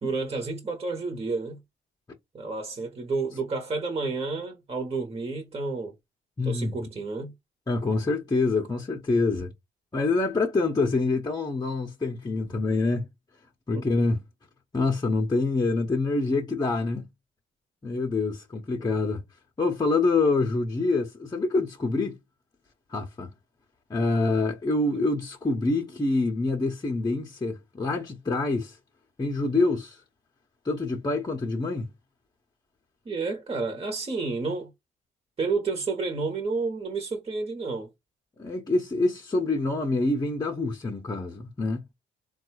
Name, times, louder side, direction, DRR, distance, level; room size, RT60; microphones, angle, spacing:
voice 1, 0.0-1.6 2.3-5.9 6.5-7.3 13.7-13.8 33.0-34.7 35.4-37.9, right 4 dB, 30° right, 1.0 m, -30 dB
voice 2, 6.4-6.9 7.7-9.5 9.9-13.1 13.7-14.2 14.7-17.1 17.8-19.2 19.6-22.2 22.9-23.3 23.9-28.8 29.2-30.0 30.6-31.9 38.4-41.9, left 3 dB, 20° left, 0.7 m, -26 dB
3.7 x 2.3 x 4.5 m
cardioid pair, 90°, 20 cm